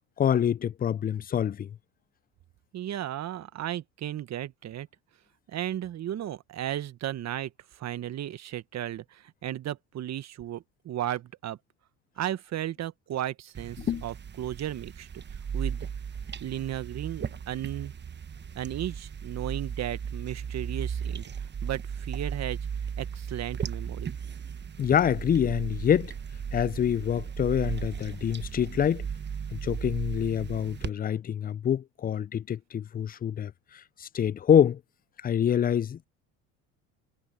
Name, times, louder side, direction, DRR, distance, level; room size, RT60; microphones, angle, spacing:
voice 1, 0.2-1.7 13.8-14.0 24.8-26.1 26.5-29.1 29.5-34.8 35.2-36.0, left 9 dB, 25° left, 0.5 m, -26 dB
voice 2, 2.7-4.9 5.5-11.6 12.2-15.1 15.5-15.9 16.4-17.9 18.5-22.6 23.0-24.2, right 12 dB, 45° right, 1.4 m, -35 dB
sound 1, 13.5-30.9, right 7 dB, 30° right, 1.2 m, -36 dB
hypercardioid pair, 75°, 38 cm